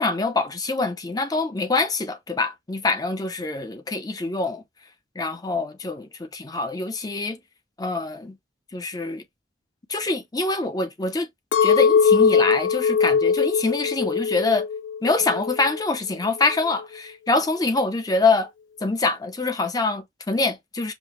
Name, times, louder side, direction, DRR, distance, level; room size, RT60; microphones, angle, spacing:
voice 1, 0.0-4.6 5.2-7.4 7.8-8.4 8.7-9.2 9.9-11.3 11.6-14.7 15.0-18.5 18.8-20.9, left 3 dB, 20° left, 0.5 m, -25 dB
Chink clink, 11.5-15.8 16.2-16.8, left 6 dB, 85° left, 0.5 m, -21 dB
5.2 x 2.0 x 3.0 m
head